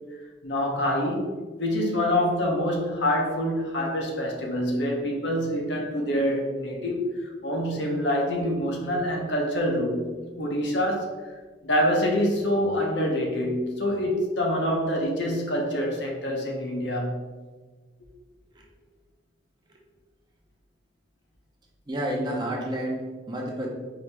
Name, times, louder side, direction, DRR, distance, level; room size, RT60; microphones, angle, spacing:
voice 1, 0.4-10.1 10.3-11.3 11.6-17.2, equal, 70° left, 0 dB, 0.8 m, -26 dB
voice 2, 21.9-23.7, right 1 dB, 25° right, -1 dB, 0.6 m, -30 dB
4.7 x 2.8 x 3.3 m, 1.3 s
head